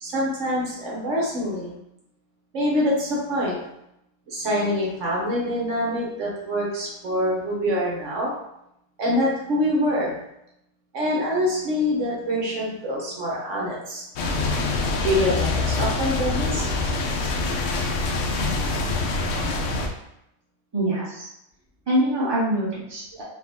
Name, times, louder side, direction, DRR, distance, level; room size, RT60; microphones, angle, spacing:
voice 1, 0.0-1.7 2.5-3.6 4.3-8.3 9.0-10.2 10.9-14.0 15.0-16.7, equal, 65° right, -3 dB, 1.3 m, -25 dB
sound 1, 14.2-19.9, left 3 dB, 70° left, 0.9 m, -25 dB
voice 2, 20.7-21.3 21.9-23.2, right 1 dB, 20° right, -7 dB, 1.2 m, -24 dB
4.5 x 2.4 x 3.5 m, 0.81 s
omnidirectional pair, 1.4 m